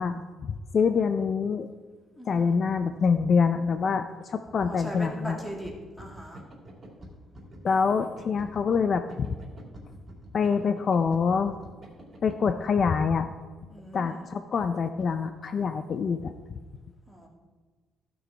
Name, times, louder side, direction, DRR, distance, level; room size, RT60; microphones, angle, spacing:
voice 1, 0.0-1.7 2.3-5.4 7.6-9.3 10.3-11.6 12.2-13.3 13.9-16.3, left 5 dB, 40° left, 9 dB, 0.4 m, -25 dB
voice 2, 2.2-2.6 4.6-5.7 6.0-6.4 13.7-14.2 17.1-17.3, equal, 10° left, 0 dB, 2.0 m, -39 dB
sound 1, 4.4-12.5, right 1 dB, 25° right, 2.5 m, -47 dB
15.0 x 6.4 x 4.5 m, 1.4 s
cardioid pair, 145°, 0 cm